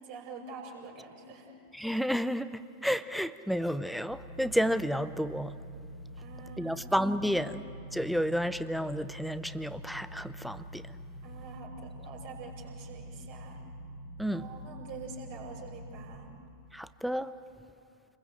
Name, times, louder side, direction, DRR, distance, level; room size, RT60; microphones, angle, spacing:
voice 1, 0.0-1.5 6.2-6.9 7.2-7.6 11.2-13.6 14.3-16.3, right 4 dB, 50° right, -1 dB, 5.7 m, -46 dB
voice 2, 1.7-5.5 6.6-7.6 7.9-10.9 14.2-14.5 16.7-17.3, equal, ahead, 13 dB, 0.6 m, -31 dB
sound 1, 4.1-16.1, right 1 dB, 65° right, 5.5 m, -45 dB
29.0 x 21.5 x 7.7 m, 2.5 s
figure-of-eight pair, 90°, 0 cm